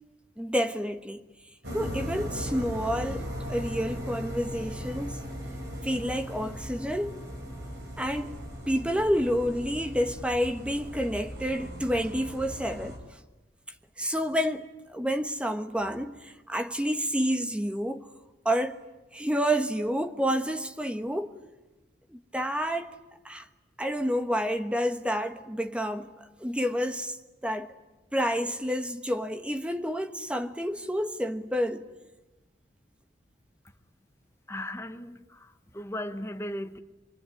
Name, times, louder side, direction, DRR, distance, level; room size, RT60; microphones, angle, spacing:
voice 1, 0.4-1.2 1.7-5.2 5.8-7.1 8.0-8.3 8.7-13.0 14.0-18.1 18.4-18.8 19.1-21.3 22.1-22.9 23.2-23.4 23.8-26.1 26.4-27.2 27.4-27.7 28.1-31.9, equal, 5° right, 1.3 m, -29 dB
sound 1, 1.6-13.0, equal, 70° right, 7.1 m, -38 dB
voice 2, 34.5-36.8, left 1 dB, 15° left, 1.3 m, -37 dB
25.0 x 24.0 x 10.0 m
head